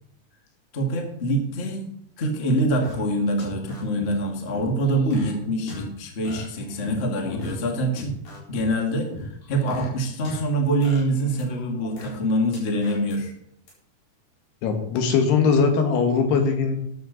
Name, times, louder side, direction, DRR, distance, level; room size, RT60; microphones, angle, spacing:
voice 1, 0.7-1.9 2.2-8.2 8.5-13.3, right 1 dB, 35° left, 2 dB, 1.0 m, -25 dB
sound 1, 2.4-2.9 3.4-4.0 4.5-5.3 5.7-5.8 6.2-7.0 7.3-7.5 8.0-8.6 9.1-10.4 10.8-12.1 12.5-13.1 13.7-13.8, left 1 dB, 65° left, 6.0 m, -38 dB
voice 2, 14.6-16.8, left 5 dB, 85° left, 5 dB, 3.7 m, -21 dB
13.0 x 10.5 x 4.0 m, 0.70 s
omnidirectional pair, 4.6 m